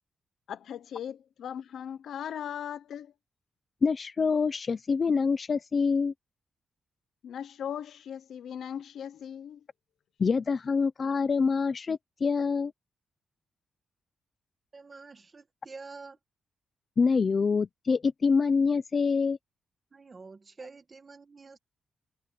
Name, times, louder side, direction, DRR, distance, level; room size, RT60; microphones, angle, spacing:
voice 1, 0.5-3.1 7.2-9.6, left 9 dB, 70° left, 0.8 m, -38 dB
voice 2, 3.8-6.1 10.2-12.7 17.0-19.4, left 5 dB, 35° left, 0.7 m, -26 dB
voice 3, 14.7-16.2 19.9-21.6, right 4 dB, 30° right, 1.9 m, -47 dB
wide cardioid pair, 155°, 0 cm